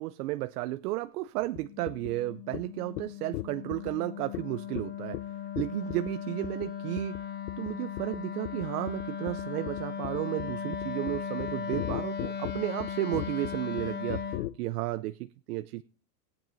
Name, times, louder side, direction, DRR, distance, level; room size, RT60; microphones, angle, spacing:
voice 1, 0.0-5.2 5.6-7.2 7.6-15.8, right 17 dB, 70° right, 0.6 m, -33 dB
sound 1, 1.6-1.7 1.9-2.1 2.5-2.6 3.0-3.1 3.3-3.9 4.3-4.4 4.8-4.9 5.1-5.2 5.6-6.1 6.4-6.7 7.0-7.2 7.5-7.7 8.0-8.2 8.4-14.5, left 16 dB, 65° left, 0.7 m, -36 dB
Wind instrument woodwind instrument, 1.6-14.5, left 7 dB, 20° left, 0.8 m, -37 dB
15.0 x 9.5 x 4.0 m
supercardioid pair, 155°, 48 cm